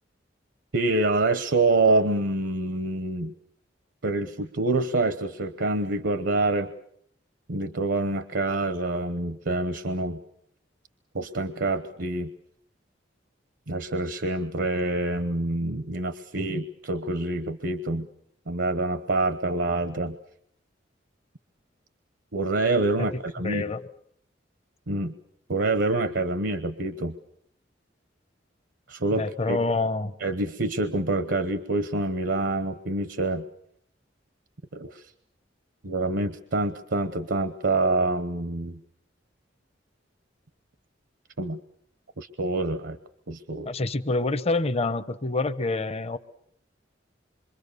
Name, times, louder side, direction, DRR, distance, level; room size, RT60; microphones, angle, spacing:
voice 1, 0.7-3.3 4.0-6.7 7.5-10.2 11.1-12.3 13.7-18.1 18.5-20.2 22.3-23.6 24.9-25.1 25.5-27.2 28.9-29.6 30.2-33.4 34.7-35.1 35.8-38.8 41.4-41.6 42.2-43.0 43.3-43.7, right 2 dB, 70° right, 11 dB, 1.0 m, -26 dB
voice 2, 23.4-23.8 29.1-30.1 43.7-46.2, left 3 dB, 35° left, 11 dB, 0.9 m, -27 dB
26.5 x 24.0 x 6.9 m, 0.69 s
head